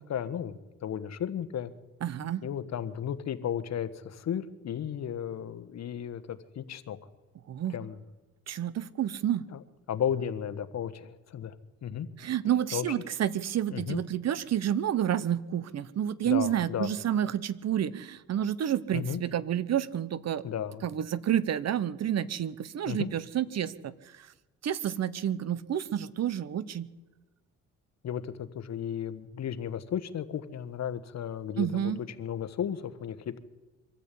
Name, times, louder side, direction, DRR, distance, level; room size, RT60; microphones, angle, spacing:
voice 1, 0.0-1.7 2.4-7.0 7.7-8.0 9.5-9.6 9.9-11.5 11.8-12.1 12.7-12.8 13.7-14.0 16.2-16.9 18.9-19.2 20.4-20.8 22.9-23.1 28.0-31.9 32.2-33.4, left 9 dB, 60° left, 12 dB, 1.4 m, -34 dB
voice 2, 2.0-2.4 7.5-7.8 8.5-9.5 12.2-20.4 20.8-24.3 24.6-26.9 31.6-32.0, right 10 dB, 60° right, 17 dB, 1.0 m, -29 dB
24.5 x 13.5 x 8.5 m, 1.1 s
cardioid pair, 90°, 30 cm